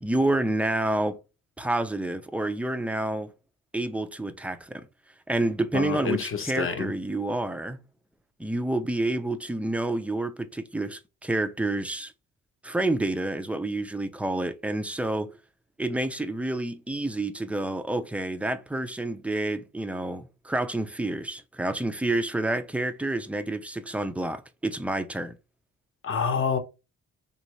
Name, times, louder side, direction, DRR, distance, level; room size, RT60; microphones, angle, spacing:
voice 1, 0.0-1.2 1.6-3.3 3.7-4.9 5.3-7.8 8.4-12.1 12.6-15.4 15.8-25.4, right 2 dB, 5° right, 0.4 m, -29 dB
voice 2, 5.7-6.9 26.0-26.6, left 6 dB, 45° left, 0.8 m, -27 dB
3.4 x 2.8 x 3.1 m
cardioid pair, 90°, 30 cm